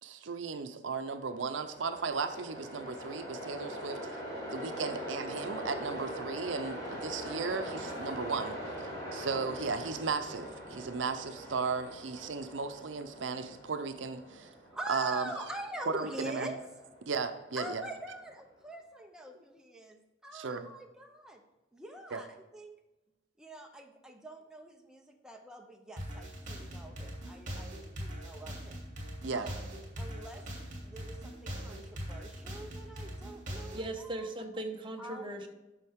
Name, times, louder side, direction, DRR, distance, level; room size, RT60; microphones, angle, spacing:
voice 1, 0.0-4.0 4.5-8.6 9.1-14.5 14.9-15.3 15.9-16.5 17.1-17.8 20.3-20.7 22.1-22.2 29.2-29.5, right 4 dB, 80° right, 8 dB, 0.6 m, -35 dB
Train, 1.2-18.3, equal, 25° left, 2.9 m, -42 dB
voice 2, 14.7-16.7 17.6-21.4 21.7-22.7 23.4-28.8 29.3-29.5 30.0-30.4 30.8-34.3 35.0-35.5, right 1 dB, 5° right, 2 dB, 0.7 m, -44 dB
sound 1, 26.0-33.9, equal, 45° right, 2.6 m, -41 dB
voice 3, 33.7-35.5, right 1 dB, 25° right, 3 dB, 1.0 m, -38 dB
12.5 x 5.5 x 3.6 m, 1.0 s
head